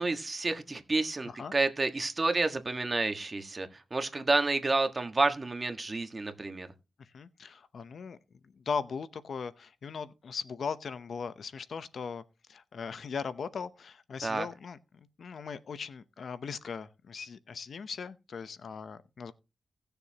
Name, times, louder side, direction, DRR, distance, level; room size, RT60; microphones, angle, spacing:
voice 1, 0.0-6.7 14.2-14.5, right 3 dB, 30° right, 1.5 m, -30 dB
voice 2, 7.0-8.2 8.5-12.2 12.5-14.8 15.2-19.3, left 6 dB, 70° left, 0.7 m, -39 dB
17.5 x 6.9 x 2.9 m
wide cardioid pair, 90°, 0 cm